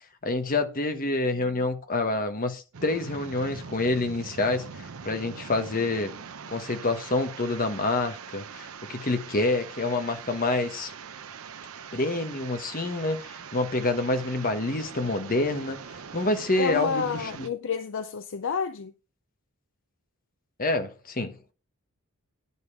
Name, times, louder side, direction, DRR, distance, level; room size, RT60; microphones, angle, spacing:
voice 1, 0.2-4.7 5.0-6.1 6.5-10.9 11.9-15.8 16.1-17.5 20.6-21.3, left 2 dB, 40° left, 1.1 m, -27 dB
sound 1, 2.7-17.5, right 6 dB, 65° right, 0.7 m, -42 dB
voice 2, 16.6-18.9, left 5 dB, 55° left, 0.5 m, -29 dB
10.5 x 5.5 x 4.7 m
head